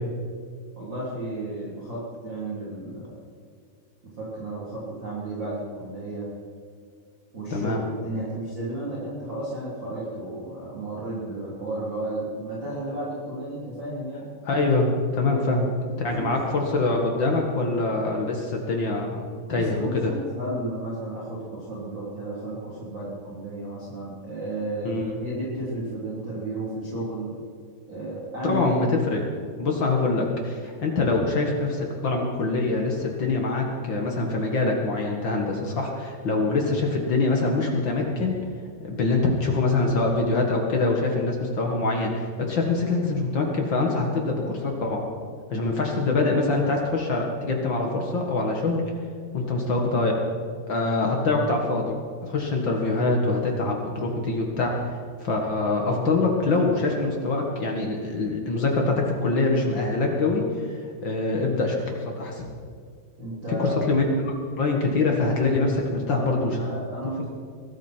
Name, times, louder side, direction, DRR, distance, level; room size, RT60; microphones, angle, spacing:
voice 1, 0.8-3.2 4.0-6.3 7.3-14.3 15.3-15.6 16.2-16.3 19.5-27.3 27.9-29.0 29.9-30.0 51.0-51.4 63.2-63.9 66.1-67.2, right 1 dB, 30° right, -9 dB, 3.8 m, -33 dB
voice 2, 7.5-7.8 14.4-15.7 16.0-19.2 19.5-20.1 24.8-25.2 28.4-29.2 29.6-38.3 38.8-45.0 45.5-48.8 49.3-50.2 50.7-52.0 52.2-61.8 62.2-62.4 63.6-66.6, left 3 dB, 60° left, 0 dB, 1.2 m, -24 dB
22.0 x 13.5 x 4.5 m, 2.2 s
omnidirectional pair, 4.8 m